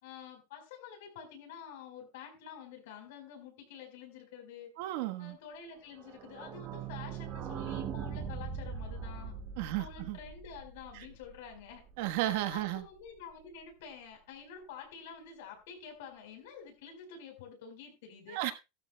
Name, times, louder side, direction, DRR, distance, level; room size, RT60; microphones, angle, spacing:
voice 1, 0.0-4.7 5.2-9.3 9.6-11.8 12.5-18.4, left 7 dB, 70° left, 4.4 m, -48 dB
voice 2, 4.8-5.4 9.6-10.2 10.9-11.0 12.0-12.8 18.3-18.5, right 15 dB, 55° right, 1.3 m, -33 dB
sound 1, 6.0-11.5 11.9-12.0 12.1-12.2 12.5-12.6, right 7 dB, 30° right, 1.8 m, -41 dB
15.0 x 13.0 x 2.3 m
supercardioid pair, 175°, 0 cm